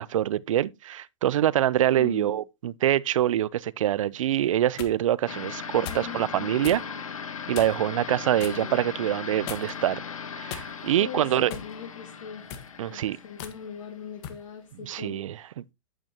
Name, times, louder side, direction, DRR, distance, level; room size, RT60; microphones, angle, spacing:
voice 1, 0.0-6.8 7.5-10.0 10.4-11.5 12.8-13.2 14.8-15.6, right 12 dB, 75° right, 0.5 m, -25 dB
voice 2, 2.0-2.4 5.7-7.0 8.3-8.9 11.0-12.5 12.9-15.5, left 8 dB, 70° left, 2.0 m, -41 dB
sound 1, 4.4-5.0 5.8-6.1 6.6-6.8 7.5-7.9 8.4-8.6 9.5-9.9 10.5-11.0 11.5-11.7 12.4-12.7 13.4-13.6 14.2-14.4, left 8 dB, 55° left, 1.6 m, -39 dB
sound 2, 5.3-14.3, left 6 dB, 90° left, 1.5 m, -38 dB
8.8 x 8.6 x 2.9 m
hypercardioid pair, 120°, 17 cm